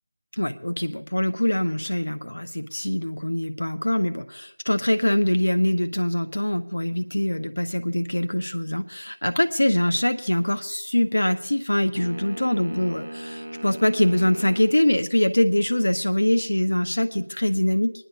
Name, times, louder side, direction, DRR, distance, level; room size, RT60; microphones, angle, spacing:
voice 1, 0.3-17.9, left 1 dB, 70° left, 8 dB, 0.6 m, -23 dB
sound 1, 12.0-14.8, right 1 dB, 70° right, 0.9 m, -37 dB
24.5 x 9.9 x 2.7 m, 0.75 s
figure-of-eight pair, 165°, 0 cm